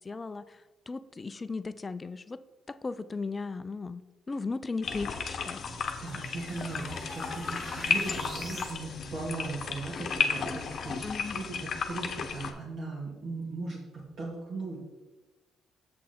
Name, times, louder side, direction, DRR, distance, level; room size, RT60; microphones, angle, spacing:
voice 1, 0.0-2.4 2.7-5.8 11.0-11.4, left 4 dB, 25° left, 14 dB, 0.4 m, -37 dB
sound 1, 4.8-12.5, left 5 dB, 55° left, 0.9 m, -33 dB
sound 2, 4.9-8.8, equal, 30° right, 1.6 m, -45 dB
voice 2, 6.0-14.8, right 3 dB, 60° right, -5 dB, 2.1 m, -38 dB
7.5 x 6.1 x 4.3 m, 1.1 s
cardioid pair, 95°, 0 cm